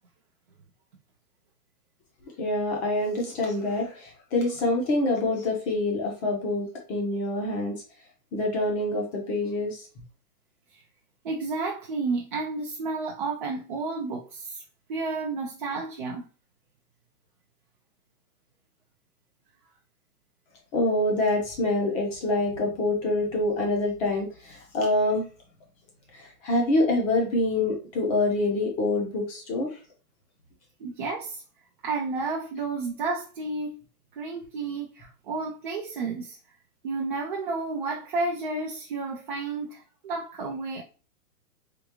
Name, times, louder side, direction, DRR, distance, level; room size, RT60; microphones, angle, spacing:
voice 1, 2.4-7.8 8.3-9.9 20.7-25.3 26.1-29.8, left 2 dB, 15° left, 0.6 m, -26 dB
voice 2, 11.2-14.6 14.9-16.3 30.8-31.4 31.8-33.8 34.2-36.4 36.8-40.8, right 3 dB, 35° right, 0.4 m, -31 dB
3.7 x 2.3 x 2.9 m
hypercardioid pair, 140°, 46 cm